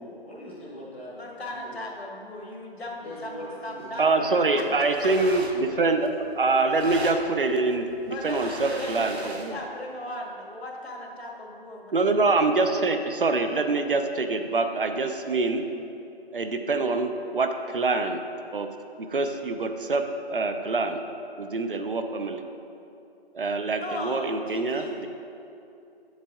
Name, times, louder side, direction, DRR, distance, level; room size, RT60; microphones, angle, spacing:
voice 1, 0.0-1.2 1.5-1.8 3.0-4.3 4.7-5.1 5.7-5.9, equal, 10° left, -11 dB, 0.8 m, -41 dB
voice 2, 1.2-4.1 4.6-5.1 8.1-12.2 23.8-25.0, left 1 dB, 75° left, 0 dB, 1.7 m, -37 dB
voice 3, 4.0-9.6 11.9-15.6 16.3-18.2 18.5-18.7 19.0-20.0 20.3-21.0 21.4-22.4 23.3-25.1, right 3 dB, 55° right, 7 dB, 0.6 m, -25 dB
sound 1, 4.5-9.6, right 2 dB, 85° right, 1.1 m, -40 dB
7.4 x 7.3 x 3.6 m, 2.7 s
figure-of-eight pair, 170°, 31 cm